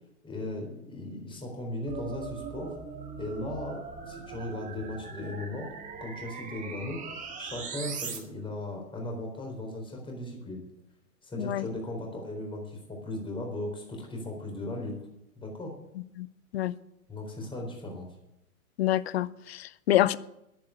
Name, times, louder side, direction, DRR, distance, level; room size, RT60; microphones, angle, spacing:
voice 1, 0.2-2.8 3.2-5.7 6.0-7.0 7.4-10.6 11.2-15.0 15.4-15.7 17.1-18.1, left 1 dB, 10° left, 4.0 m, -37 dB
sound 1, 1.9-8.2, right 5 dB, 15° right, 1.8 m, -40 dB
voice 2, 18.8-20.2, left 13 dB, 45° left, 0.7 m, -26 dB
11.0 x 10.5 x 8.1 m
figure-of-eight pair, 110°, 45 cm